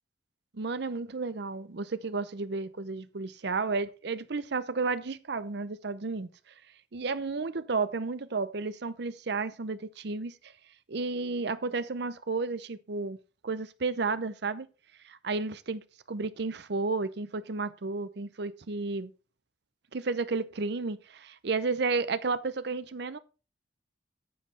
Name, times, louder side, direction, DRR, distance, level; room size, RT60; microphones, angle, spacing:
voice 1, 0.5-6.3 6.9-10.5 10.9-13.2 13.4-14.7 15.0-19.1 19.9-23.2, right 4 dB, 60° right, 0.7 m, -32 dB
9.5 x 7.6 x 3.3 m
head